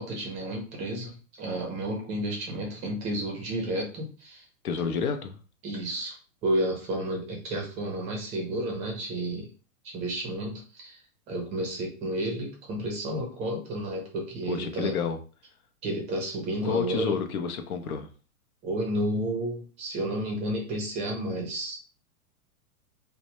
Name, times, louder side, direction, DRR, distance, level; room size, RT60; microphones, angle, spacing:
voice 1, 0.0-4.4 5.6-6.2 6.4-9.5 9.8-11.0 11.3-14.9 15.8-17.1 18.6-21.8, right 1 dB, 15° right, 0.5 m, -31 dB
voice 2, 4.6-5.4 14.5-15.2 16.6-18.1, left 6 dB, 80° left, 0.6 m, -29 dB
2.1 x 2.1 x 2.9 m
hypercardioid pair, 140°, 43 cm